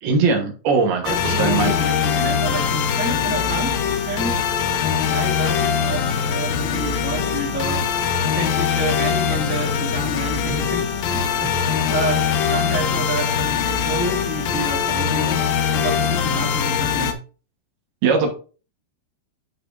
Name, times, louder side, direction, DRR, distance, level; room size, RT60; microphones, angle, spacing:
voice 1, 0.0-1.7 18.0-18.3, right 4 dB, 75° right, 3 dB, 3.2 m, -20 dB
voice 2, 1.0-3.8 4.0-4.4 5.0-17.2, right 2 dB, 5° right, -4 dB, 1.9 m, -29 dB
sound 1, 1.1-17.1, left 7 dB, 75° left, 2.4 m, -22 dB
11.0 x 5.1 x 2.6 m, 0.35 s
omnidirectional pair, 4.6 m